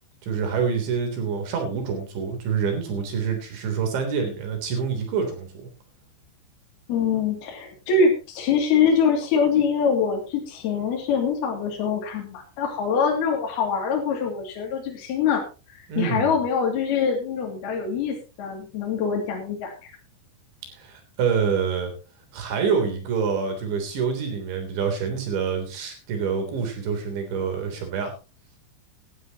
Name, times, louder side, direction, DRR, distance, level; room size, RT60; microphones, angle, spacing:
voice 1, 0.2-5.7 15.9-16.3 20.7-21.9 22.3-28.1, right 6 dB, 70° right, 4 dB, 5.6 m, -26 dB
voice 2, 6.9-15.4 15.7-19.7, left 6 dB, 60° left, 0 dB, 4.3 m, -24 dB
17.5 x 12.5 x 2.9 m, 0.31 s
omnidirectional pair, 5.4 m